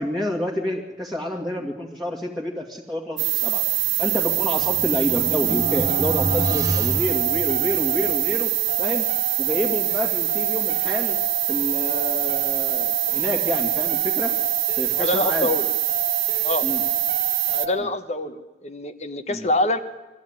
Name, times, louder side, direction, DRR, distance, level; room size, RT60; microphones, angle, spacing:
voice 1, 0.0-3.6 4.0-8.5 8.8-9.1 9.4-11.2 11.5-14.4 14.8-15.5 16.6-16.8 19.3-19.5, left 1 dB, ahead, -3 dB, 2.1 m, -28 dB
sound 1, 3.2-17.7, right 14 dB, 85° right, 1.4 m, -24 dB
sound 2, 4.1-8.0, equal, 20° right, 1.6 m, -29 dB
sound 3, 5.1-17.9, right 2 dB, 40° right, 1.5 m, -34 dB
voice 2, 14.9-15.7 16.4-16.7 17.5-19.8, left 2 dB, 35° left, 10 dB, 1.2 m, -25 dB
22.5 x 14.0 x 9.7 m, 1.2 s
head